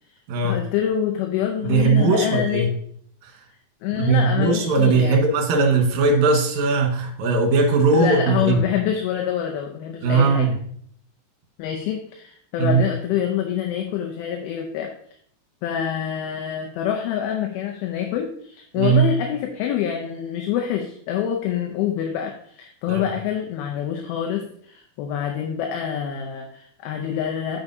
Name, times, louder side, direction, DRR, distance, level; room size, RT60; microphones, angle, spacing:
voice 1, 0.4-2.7 3.8-5.3 7.9-10.5 11.6-14.9 15.6-27.6, left 9 dB, 85° left, 2 dB, 2.6 m, -26 dB
voice 2, 1.7-2.7 3.9-8.6 10.0-10.5 12.6-12.8 18.8-19.1 22.9-23.1, right 4 dB, 60° right, 3 dB, 2.3 m, -19 dB
9.6 x 5.9 x 2.7 m, 0.64 s
omnidirectional pair, 4.4 m